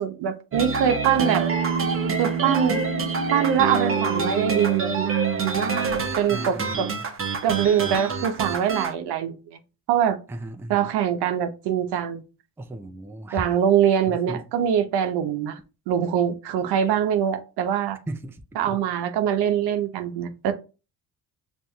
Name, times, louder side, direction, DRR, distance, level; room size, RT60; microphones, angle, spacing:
voice 1, 0.0-1.5 2.2-2.8 3.3-6.9 7.4-9.6 9.9-10.2 10.7-12.2 13.3-15.6 15.9-18.0 18.6-20.5, right 9 dB, 65° right, 0.8 m, -23 dB
sound 1, 0.5-8.9, right 5 dB, 30° right, 0.8 m, -26 dB
sound 2, 1.5-7.5, left 8 dB, 80° left, 0.8 m, -40 dB
voice 2, 6.3-7.1 10.3-10.9 12.6-13.4 14.1-14.5 18.1-18.8, right 1 dB, 5° right, 0.4 m, -36 dB
6.1 x 2.7 x 2.3 m
supercardioid pair, 65°, 42 cm